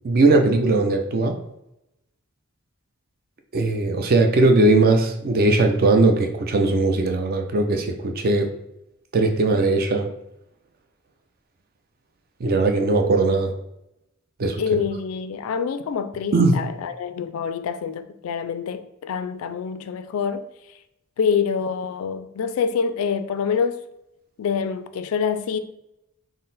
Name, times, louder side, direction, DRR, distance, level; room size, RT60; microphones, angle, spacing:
voice 1, 0.0-1.4 3.5-8.5 9.1-10.1 12.4-13.5 14.4-14.6 16.3-16.5, right 2 dB, 45° right, 0.4 m, -19 dB
voice 2, 14.6-20.4 21.2-23.8 24.4-25.6, left 6 dB, 70° left, 0.3 m, -26 dB
3.8 x 2.1 x 3.9 m
head